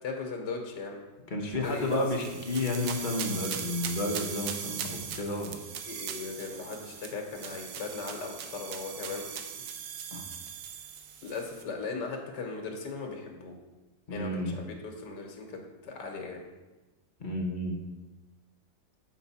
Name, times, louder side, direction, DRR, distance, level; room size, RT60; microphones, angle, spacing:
voice 1, 0.0-1.0 1.4-2.3 5.9-9.4 11.2-13.6 14.1-16.4, left 4 dB, 75° left, 2 dB, 1.6 m, -38 dB
voice 2, 1.3-5.5 10.1-10.2 14.1-14.6 17.2-17.8, left 2 dB, 40° left, 0 dB, 0.8 m, -31 dB
sound 1, 1.6-11.6, right 8 dB, 85° right, 1.3 m, -40 dB
7.3 x 4.6 x 4.1 m, 1.1 s
omnidirectional pair, 1.9 m